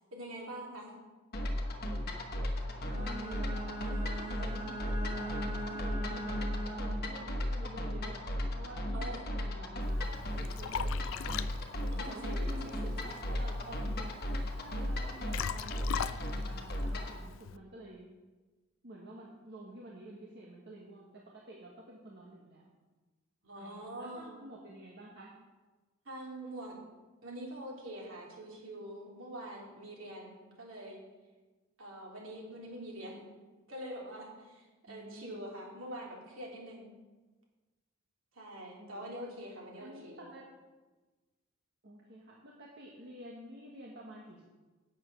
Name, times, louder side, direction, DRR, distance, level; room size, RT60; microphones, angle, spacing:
voice 1, 0.1-0.9 8.9-9.4 11.9-12.9 23.4-24.3 26.0-26.8 27.2-31.0 31.8-33.2 33.7-36.9 38.3-40.2, right 1 dB, 70° right, -3 dB, 3.0 m, -44 dB
sound 1, 1.3-17.2, left 1 dB, 50° left, 1.2 m, -36 dB
Bowed string instrument, 2.8-7.2, right 2 dB, 35° right, 2.5 m, -41 dB
voice 2, 2.9-11.2 12.0-14.2 14.5-18.1 18.8-22.7 23.5-25.3 34.9-35.4 38.8-39.2 39.8-40.4 41.8-44.4, right 1 dB, 55° right, -3 dB, 1.4 m, -50 dB
Liquid, 9.8-17.6, left 8 dB, 65° left, 0.4 m, -42 dB
9.0 x 7.3 x 6.1 m, 1.3 s
head